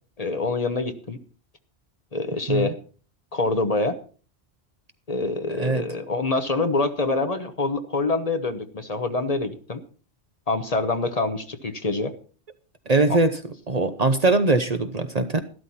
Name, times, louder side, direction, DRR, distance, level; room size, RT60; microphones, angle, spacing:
voice 1, 0.2-1.2 2.1-2.7 3.3-4.0 5.1-9.8 10.5-12.1 13.1-13.2, left 3 dB, 35° left, 9 dB, 1.0 m, -25 dB
voice 2, 12.9-13.4 13.7-15.4, right 3 dB, 40° right, 10 dB, 0.8 m, -21 dB
13.0 x 12.5 x 4.2 m, 0.39 s
omnidirectional pair, 1.1 m